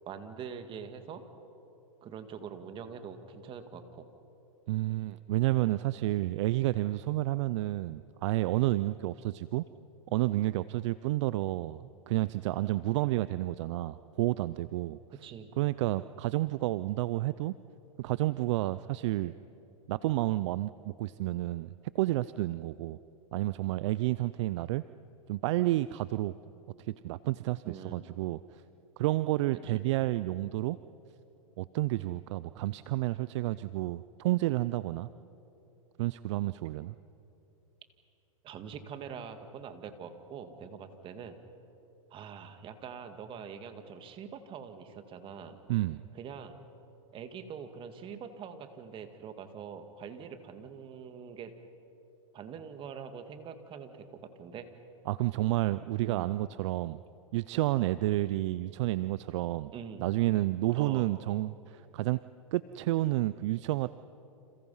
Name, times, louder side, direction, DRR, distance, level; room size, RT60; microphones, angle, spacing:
voice 1, 0.1-1.2 2.0-4.1 15.1-15.5 27.7-28.1 29.6-29.9 38.4-41.4 42.1-45.6 46.1-46.6 47.1-51.5 52.3-54.7 56.0-56.4 59.7-60.0 60.7-61.1, right 7 dB, 30° right, 8 dB, 2.1 m, -44 dB
voice 2, 4.7-9.7 10.1-15.0 15.6-17.5 18.0-19.3 19.9-23.0 23.3-24.8 25.3-26.3 26.8-28.4 29.0-30.8 31.6-35.1 36.0-36.9 45.7-46.0 55.1-57.0 57.3-59.7 60.0-62.2 62.5-63.9, right 17 dB, 55° right, 16 dB, 0.5 m, -30 dB
30.0 x 27.5 x 5.6 m, 2.9 s
hypercardioid pair, 125°, 18 cm